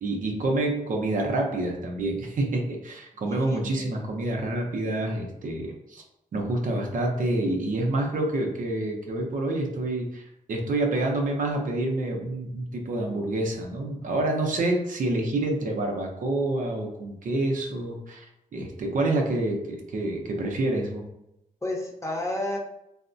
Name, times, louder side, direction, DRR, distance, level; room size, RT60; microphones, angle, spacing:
voice 1, 0.0-6.0 6.3-10.2 10.5-18.3 18.5-21.0, right 2 dB, 70° right, 1 dB, 0.6 m, -27 dB
voice 2, 3.3-3.9 21.6-22.6, left 1 dB, 20° left, -1 dB, 0.7 m, -32 dB
3.4 x 2.0 x 2.5 m, 0.83 s
cardioid pair, 75°, 14 cm